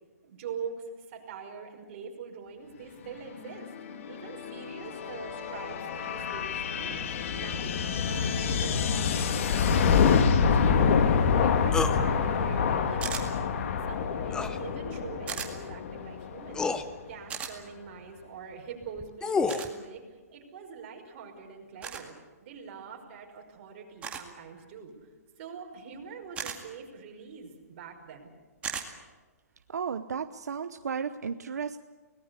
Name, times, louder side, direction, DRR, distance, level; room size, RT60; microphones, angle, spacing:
voice 1, 0.2-3.7 4.1-10.8 11.3-13.5 13.9-16.7 17.1-20.0 20.3-22.1 22.4-24.9 25.4-28.3, right 6 dB, 40° right, 1 dB, 5.5 m, -44 dB
sound 1, 3.5-16.9, left 6 dB, 50° left, 1.9 m, -27 dB
sound 2, 11.7-12.0 14.3-14.6 15.9-16.0 16.5-16.8 18.8-19.7, left 4 dB, 10° left, 0.8 m, -28 dB
sound 3, 13.0-13.3 15.3-15.5 17.3-17.5 19.5-19.7 21.8-22.0 24.0-24.3 26.3-26.6 28.6-28.9, right 7 dB, 15° right, 2.2 m, -35 dB
voice 2, 29.7-31.8, right 6 dB, 80° right, 10 dB, 1.0 m, -34 dB
25.0 x 18.5 x 8.3 m, 1.4 s
hypercardioid pair, 155°, 9 cm